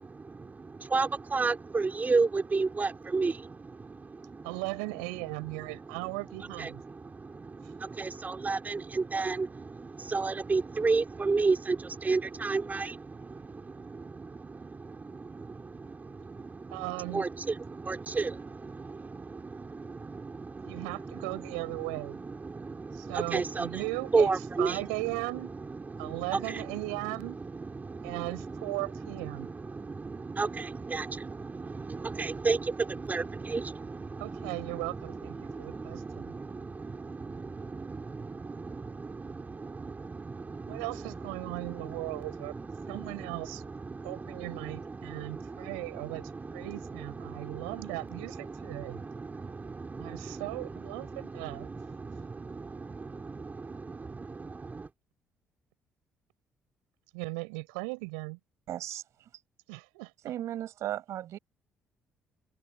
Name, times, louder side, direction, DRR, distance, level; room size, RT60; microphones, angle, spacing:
voice 1, 0.1-4.5 6.6-16.8 17.1-20.9 21.1-21.4 22.3-23.9 24.1-24.8 25.9-26.8 27.1-27.2 27.4-28.7 29.2-40.8 41.4-47.9 48.5-54.9, right 4 dB, 30° right, 3.9 m, -34 dB
voice 2, 4.4-6.8 16.7-17.3 20.7-22.2 22.9-25.5 26.0-27.4 28.0-29.5 34.2-36.3 40.7-42.5 42.9-43.6 44.0-49.0 50.0-51.7 57.1-58.4 59.7-60.3, right 35 dB, 80° right, 6.2 m, -37 dB
voice 3, 58.7-59.0 60.2-61.4, right 12 dB, 65° right, 5.5 m, -35 dB
open air
hypercardioid pair, 50°, 6 cm